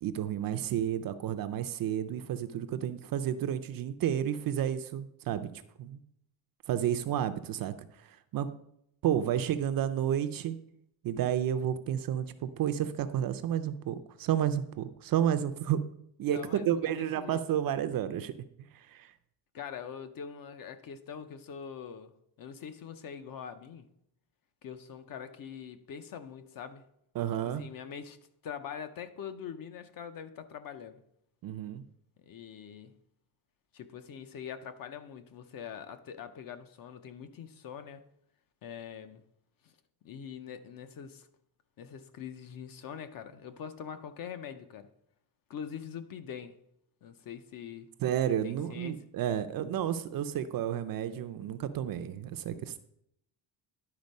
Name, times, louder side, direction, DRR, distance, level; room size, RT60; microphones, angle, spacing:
voice 1, 0.0-5.5 5.8-6.0 6.7-8.5 9.0-10.6 11.0-15.9 16.2-18.3 18.7-19.1 27.2-27.6 31.4-31.8 48.0-52.8, right 10 dB, 45° right, 0.5 m, -31 dB
voice 2, 16.3-17.4 19.5-22.1 22.4-23.9 24.6-26.8 27.4-28.2 28.4-31.0 32.2-33.0 33.7-38.1 38.6-39.2 39.6-39.7 40.0-41.3 41.8-44.9 45.5-46.6 47.0-47.9 48.4-49.0, left 7 dB, 45° left, 0.6 m, -43 dB
10.5 x 4.4 x 5.3 m
cardioid pair, 170°, 49 cm